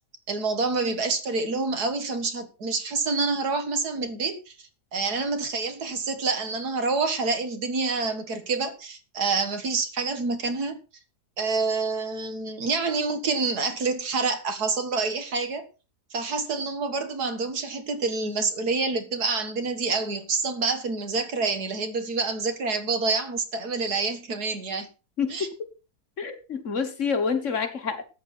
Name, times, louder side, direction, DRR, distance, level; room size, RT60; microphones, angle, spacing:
voice 1, 0.3-4.5 4.9-10.8 11.4-15.7 16.1-24.9 25.3-25.5, right 4 dB, 70° right, 2.2 m, -27 dB
voice 2, 25.2-25.5 26.2-28.0, left 5 dB, 50° left, 1.6 m, -27 dB
13.5 x 8.9 x 4.3 m
omnidirectional pair, 1.7 m